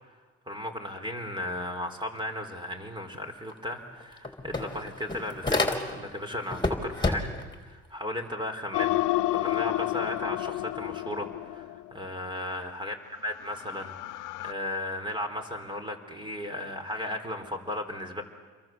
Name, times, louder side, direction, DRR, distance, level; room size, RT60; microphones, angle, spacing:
voice 1, 0.5-12.9 13.2-18.2, left 1 dB, 15° right, 5 dB, 4.4 m, -35 dB
sound 1, 3.5-3.6 3.9-6.2 6.5-7.5, left 2 dB, 15° left, 3.7 m, -29 dB
sound 2, 8.7-11.9 13.4-14.5, left 17 dB, 90° left, 0.7 m, -30 dB
28.5 x 23.0 x 7.9 m, 1.5 s
cardioid pair, 90°, 30 cm